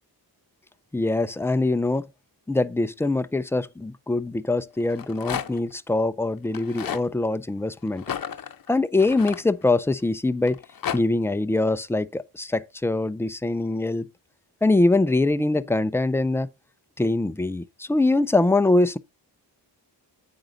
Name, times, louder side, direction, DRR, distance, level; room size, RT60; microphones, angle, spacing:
voice 1, 0.9-2.1 2.5-8.0 8.7-10.6 10.9-14.1 14.6-16.5 17.0-19.0, left 2 dB, 5° left, 0.3 m, -23 dB
Rattle, 4.8-5.7 6.5-7.1 8.0-9.9 10.5-11.0, left 8 dB, 55° left, 0.8 m, -33 dB
9.0 x 6.2 x 3.9 m
wide cardioid pair, 115°, 43 cm